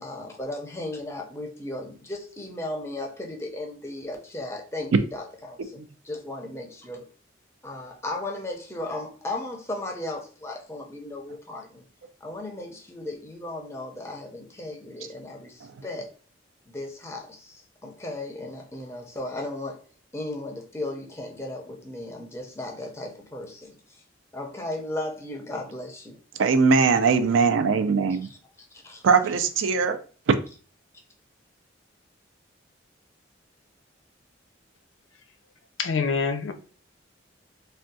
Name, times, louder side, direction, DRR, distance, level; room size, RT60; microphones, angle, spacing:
voice 1, 0.0-5.8 6.0-7.1 7.6-11.8 12.2-16.1 16.7-19.8 20.1-24.0 24.3-26.2 28.2-29.1, left 2 dB, 15° left, 0.5 m, -36 dB
voice 2, 26.4-28.3 29.0-30.0, right 5 dB, 90° right, 0.4 m, -20 dB
voice 3, 35.8-36.5, left 5 dB, 85° left, 0.4 m, -25 dB
3.5 x 2.2 x 2.6 m
head